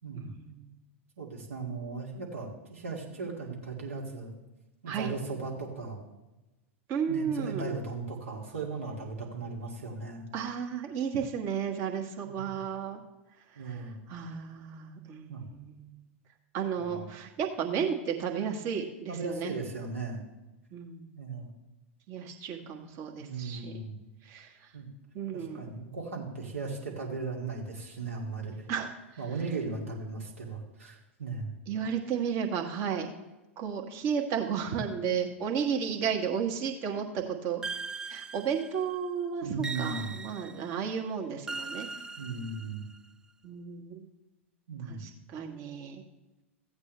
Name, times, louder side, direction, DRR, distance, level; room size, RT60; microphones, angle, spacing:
voice 1, 0.1-0.7 4.9-5.1 6.9-7.7 10.3-13.0 13.7-13.8 14.1-16.0 16.5-19.5 20.7-21.1 22.1-23.8 24.2-24.7 25.1-25.7 28.7-28.9 31.7-33.1 33.6-37.6 38.1-41.9 43.4-44.0 44.9-46.0, right 7 dB, 40° right, 2 dB, 1.5 m, -33 dB
voice 2, 1.2-4.3 4.8-6.0 7.1-10.3 12.3-12.6 13.6-14.0 15.3-15.4 16.8-17.1 19.1-20.2 21.2-21.5 23.2-24.0 24.7-24.9 25.3-28.7 29.2-31.5 39.4-40.1 42.2-42.8 44.7-45.0, right 4 dB, 70° right, -2 dB, 2.3 m, -37 dB
sound 1, 37.6-39.0 39.6-40.8 41.5-43.0, right 4 dB, 10° right, 0.4 m, -40 dB
15.0 x 8.2 x 3.3 m, 1.0 s
figure-of-eight pair, 95°, 7 cm